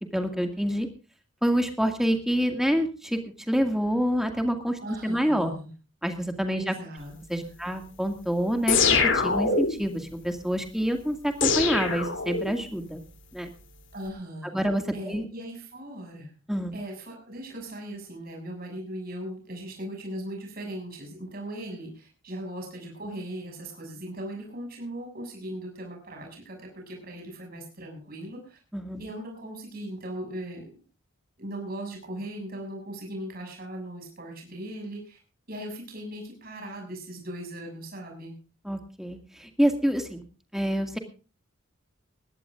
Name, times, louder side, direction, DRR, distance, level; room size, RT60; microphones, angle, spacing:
voice 1, 0.1-0.9 1.4-3.2 3.5-5.5 6.0-6.7 7.3-13.0 13.3-13.5 14.4-15.2 16.5-16.7 28.7-29.0 38.7-40.2 40.5-41.0, equal, ahead, 5 dB, 2.1 m, -27 dB
voice 2, 4.8-5.7 6.6-7.5 13.9-14.6 14.9-16.3 16.7-28.6 29.0-30.7 31.4-35.2 35.5-38.3, right 1 dB, 45° right, 2 dB, 6.7 m, -38 dB
sound 1, 8.7-9.9 11.4-12.7, left 5 dB, 60° left, 3.1 m, -24 dB
21.0 x 16.5 x 2.5 m, 0.34 s
head